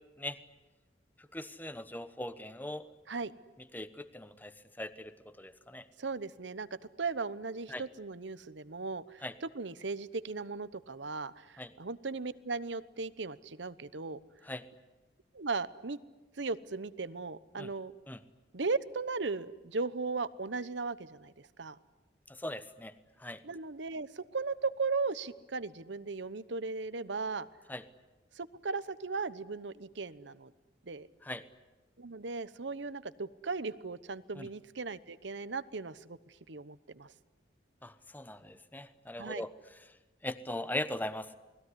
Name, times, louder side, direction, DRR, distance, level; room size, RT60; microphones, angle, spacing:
voice 1, 1.3-2.9 3.7-5.9 7.7-7.8 9.2-9.3 11.6-11.7 14.4-14.7 17.6-17.7 18.1-18.2 22.3-22.9 23.2-23.4 27.7-27.8 31.2-31.5 34.4-34.5 37.8-39.5 40.2-41.3, left 1 dB, 10° left, 12 dB, 1.0 m, -40 dB
voice 2, 6.0-6.7 7.0-14.2 15.3-16.0 16.4-17.9 18.5-21.8 23.4-27.5 28.3-30.5 30.8-31.1 32.0-37.1 39.2-39.4, right 4 dB, 80° right, 15 dB, 1.0 m, -37 dB
29.0 x 20.5 x 9.9 m, 1.1 s
head